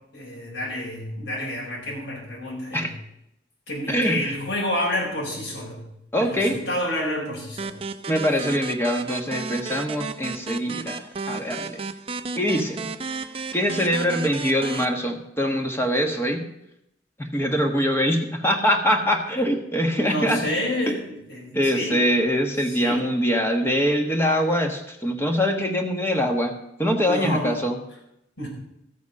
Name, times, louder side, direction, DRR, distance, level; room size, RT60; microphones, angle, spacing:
voice 1, 0.1-2.9 3.7-5.8 6.2-7.7 19.3-19.4 19.8-21.9 22.7-23.0 27.0-27.5 28.4-28.5, left 1 dB, 85° left, -4 dB, 4.5 m, -29 dB
voice 2, 3.9-4.3 6.1-6.6 8.1-11.0 11.3-11.9 12.4-12.9 13.5-16.4 17.2-20.4 21.5-26.5 26.8-27.8, equal, 15° left, 3 dB, 1.4 m, -23 dB
sound 1, 7.6-14.9, right 4 dB, 30° right, 0.6 m, -33 dB
14.0 x 8.3 x 5.4 m, 0.80 s
head